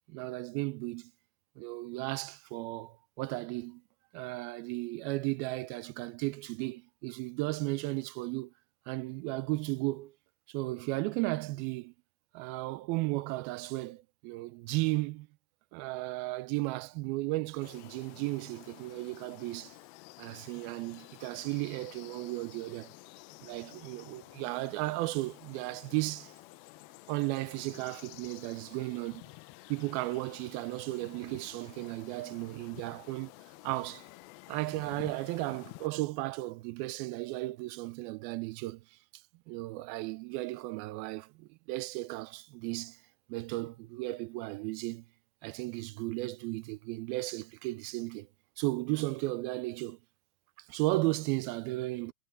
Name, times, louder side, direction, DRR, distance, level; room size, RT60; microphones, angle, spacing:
voice 1, 0.1-1.1 1.6-3.8 4.1-8.5 8.9-10.1 10.5-11.9 12.3-15.3 15.7-19.8 20.2-22.9 23.4-26.3 27.1-29.2 29.7-33.3 33.6-34.1 34.5-39.0 39.5-43.0 43.3-45.1 45.4-48.3 48.6-50.0 50.6-52.1, right 20 dB, 80° right, 2.3 m, -35 dB
sound 1, 17.6-35.9, left 20 dB, 80° left, 2.3 m, -52 dB
omnidirectional pair, 4.6 m